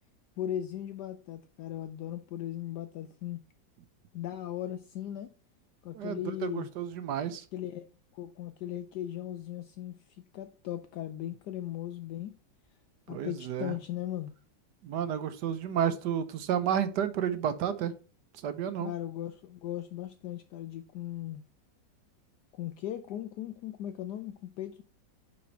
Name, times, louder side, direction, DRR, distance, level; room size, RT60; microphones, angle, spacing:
voice 1, 0.4-3.4 4.1-5.3 5.8-6.7 7.5-7.8 8.1-12.3 13.1-14.3 18.8-21.4 22.5-24.8, left 12 dB, 70° left, 1.1 m, -38 dB
voice 2, 5.9-7.4 13.1-13.8 14.8-17.9 18.4-18.9, right 9 dB, 70° right, 1.3 m, -31 dB
9.3 x 4.3 x 4.4 m
omnidirectional pair, 2.0 m